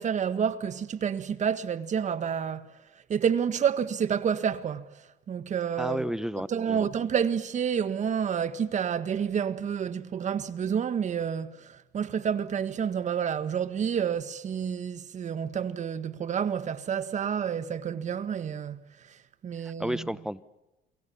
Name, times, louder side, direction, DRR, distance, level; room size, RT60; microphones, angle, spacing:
voice 1, 0.0-2.7 3.1-4.9 5.3-6.1 6.5-18.8 19.4-20.0, right 7 dB, 45° right, 1.7 m, -29 dB
voice 2, 5.8-6.9 19.6-20.4, equal, 5° right, 1.0 m, -32 dB
29.5 x 23.0 x 7.1 m
cardioid pair, 110°, 17 cm